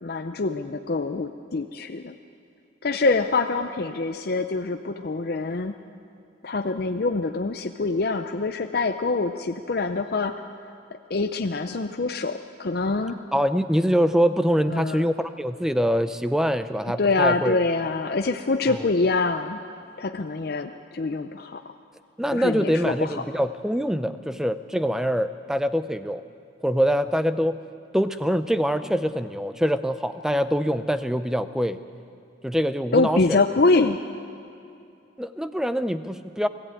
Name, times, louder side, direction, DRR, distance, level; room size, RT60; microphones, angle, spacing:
voice 1, 0.0-2.1 2.8-5.7 6.4-10.4 11.1-13.2 14.7-15.1 16.9-19.6 20.0-21.6 22.3-23.2 32.9-34.0, left 3 dB, 50° left, 5 dB, 0.6 m, -25 dB
voice 2, 13.3-17.6 18.7-18.8 22.2-26.2 26.6-27.6 27.9-31.8 32.4-33.4 35.2-36.5, equal, 5° right, 11 dB, 0.5 m, -24 dB
21.0 x 14.5 x 9.0 m, 2.5 s
head